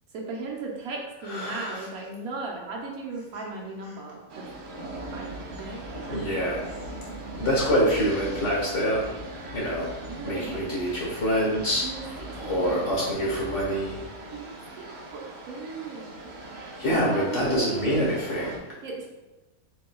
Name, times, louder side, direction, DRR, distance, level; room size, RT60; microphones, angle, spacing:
voice 1, 0.1-4.5 5.1-6.2 10.1-10.7 11.8-12.1 12.6-12.8 14.2-14.9 15.1-16.1 16.9-18.1 18.8-19.1, right 3 dB, 75° right, -1 dB, 1.3 m, -36 dB
voice 2, 1.3-1.8 6.1-6.6 7.4-9.1 9.5-9.9 10.2-11.8 12.4-14.0 16.8-18.5, equal, 55° left, -4 dB, 1.5 m, -26 dB
sound 1, 4.3-18.6, right 2 dB, 55° right, 0.8 m, -39 dB
6.7 x 2.7 x 2.3 m, 1.1 s
omnidirectional pair, 1.6 m